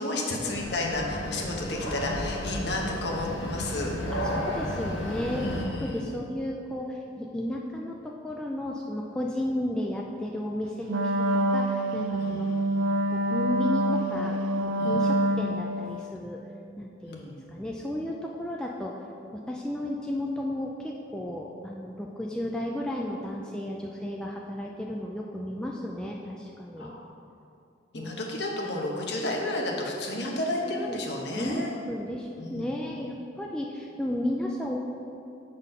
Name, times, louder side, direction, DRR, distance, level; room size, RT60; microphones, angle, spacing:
voice 1, 0.0-3.9 5.3-6.1 12.2-12.4 14.8-15.0 17.1-17.4 26.8-27.0 27.9-31.7 32.4-32.7, left 2 dB, 55° left, -1 dB, 1.0 m, -32 dB
sound 1, 0.6-5.6, equal, 85° left, 1.1 m, -33 dB
voice 2, 4.1-5.5 5.8-12.5 13.1-16.4 16.8-19.0 19.3-26.9 27.9-28.1 30.6-31.1 31.3-34.8, left 1 dB, 5° left, -2 dB, 0.3 m, -33 dB
Wind instrument woodwind instrument, 10.9-16.0, right 1 dB, 85° right, 0.5 m, -26 dB
7.2 x 4.1 x 5.3 m, 2.6 s
head